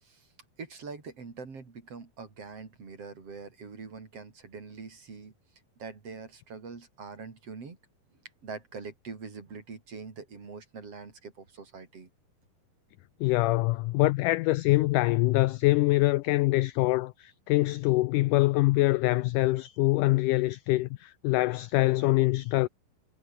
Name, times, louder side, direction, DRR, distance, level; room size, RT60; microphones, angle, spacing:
voice 1, 0.6-5.3 5.8-7.8 8.4-12.1, right 4 dB, 40° right, 4.5 m, -43 dB
voice 2, 13.2-22.7, left 19 dB, 85° left, 1.8 m, -24 dB
omnidirectional pair, 4.2 m